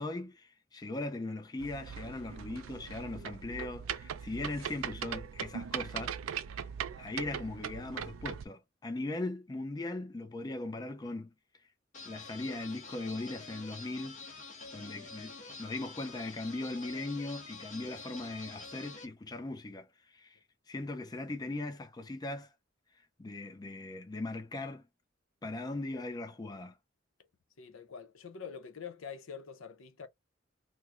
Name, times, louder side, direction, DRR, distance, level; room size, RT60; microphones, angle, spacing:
voice 1, 0.0-6.2 6.5-6.7 7.0-11.3 12.1-14.2 14.7-20.4 20.7-22.5 23.2-24.8 25.4-26.8, left 2 dB, 20° left, 0.4 m, -39 dB
sound 1, 1.6-8.5, right 8 dB, 85° right, 0.4 m, -40 dB
sound 2, 11.9-19.1, left 3 dB, 40° left, 0.8 m, -47 dB
voice 2, 27.6-30.1, left 6 dB, 75° left, 0.6 m, -45 dB
3.1 x 2.0 x 3.6 m
head